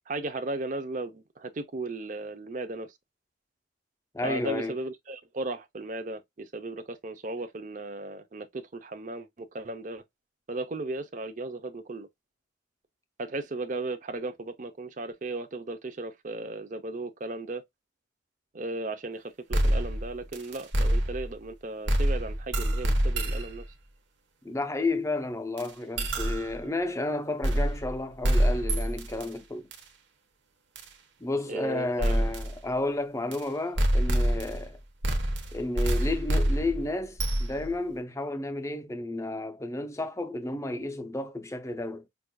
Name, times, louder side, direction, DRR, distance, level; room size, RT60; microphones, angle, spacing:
voice 1, 0.1-2.9 4.2-10.0 10.5-12.1 13.2-17.6 18.5-23.6 31.5-32.2, right 2 dB, 40° right, 0.6 m, -36 dB
voice 2, 4.1-4.7 24.4-29.7 31.2-34.8 35.5-42.1, left 2 dB, 15° left, 0.6 m, -32 dB
sound 1, 19.5-21.5 21.9-23.6 25.6-25.7 26.0-26.6 27.4-28.0 28.2-29.3 29.7-29.8 30.8-30.9 32.0-32.5 33.3-33.4 33.8-34.7 35.0-37.7, right 1 dB, 65° right, 1.0 m, -26 dB
5.9 x 2.5 x 2.2 m
head